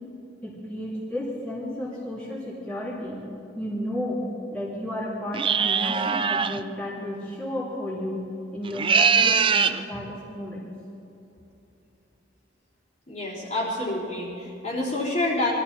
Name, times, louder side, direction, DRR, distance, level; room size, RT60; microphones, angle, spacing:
voice 1, 0.4-3.2 3.5-8.2 8.5-10.7, equal, 5° left, -8 dB, 3.2 m, -32 dB
sound 1, 5.3-6.6 8.6-9.8, right 6 dB, 25° right, 0.4 m, -22 dB
voice 2, 13.1-15.5, left 2 dB, 35° left, -7 dB, 3.5 m, -28 dB
22.5 x 13.5 x 4.4 m, 2.8 s
head